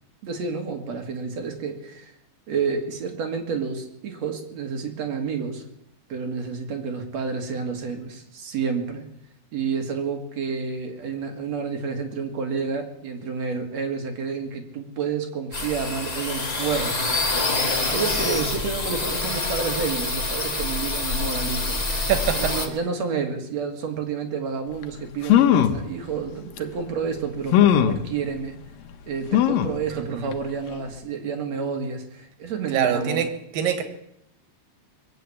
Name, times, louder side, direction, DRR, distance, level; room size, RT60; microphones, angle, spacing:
voice 1, 0.2-2.1 2.5-5.6 6.1-9.1 9.5-17.5 17.8-21.8 22.3-28.6 29.1-33.3, right 5 dB, 55° right, 4 dB, 2.8 m, -29 dB
sound 1, 15.5-22.7, left 2 dB, 35° left, 0.6 m, -26 dB
sound 2, 24.8-24.9 25.2-25.8 26.6-26.7 27.5-28.0 29.3-29.8 30.3-30.4 30.7-30.8, left 10 dB, 90° left, 2.7 m, -18 dB
voice 2, 29.9-30.3 32.7-33.3 33.5-33.8, right 9 dB, 85° right, 8 dB, 3.3 m, -24 dB
21.5 x 7.9 x 8.4 m, 0.78 s
omnidirectional pair, 3.9 m